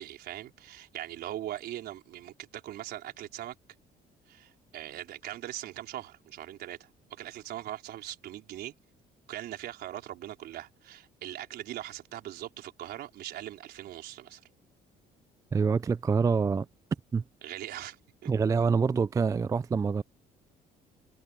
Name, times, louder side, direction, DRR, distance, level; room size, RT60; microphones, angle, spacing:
voice 1, 0.0-3.6 4.3-6.9 7.2-8.7 9.3-14.4 17.4-18.3, right 13 dB, 70° right, 4.5 m, -41 dB
voice 2, 15.5-16.7 17.1-17.2 18.3-20.0, right 5 dB, 20° right, 0.3 m, -26 dB
cardioid pair, 110°, 17 cm